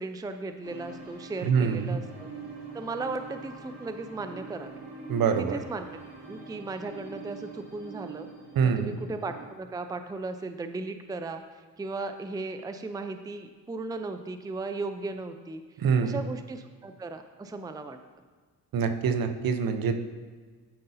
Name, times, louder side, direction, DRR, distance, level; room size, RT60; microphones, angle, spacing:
voice 1, 0.0-2.3 2.7-4.8 5.4-5.9 6.2-8.3 8.6-11.4 11.8-15.6 16.0-18.0, right 3 dB, 10° right, 8 dB, 0.5 m, -36 dB
sound 1, 0.6-9.5, right 4 dB, 75° right, 2.1 m, -44 dB
voice 2, 1.4-2.0 5.1-5.6 8.6-9.0 15.8-16.2 18.7-20.0, right 6 dB, 60° right, 8 dB, 0.8 m, -25 dB
12.0 x 5.3 x 2.7 m, 1.5 s
supercardioid pair, 60°, 40 cm